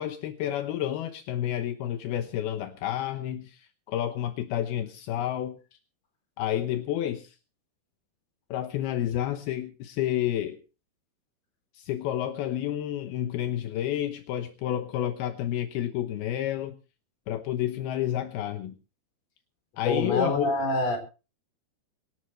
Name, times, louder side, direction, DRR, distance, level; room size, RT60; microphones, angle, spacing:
voice 1, 0.0-5.6 6.4-7.3 8.5-10.6 11.7-16.8 17.3-18.7 19.8-20.6, left 11 dB, 80° left, 6 dB, 3.0 m, -30 dB
voice 2, 19.8-21.0, left 2 dB, 40° left, 5 dB, 5.3 m, -26 dB
25.0 x 12.5 x 3.2 m, 0.35 s
omnidirectional pair, 4.5 m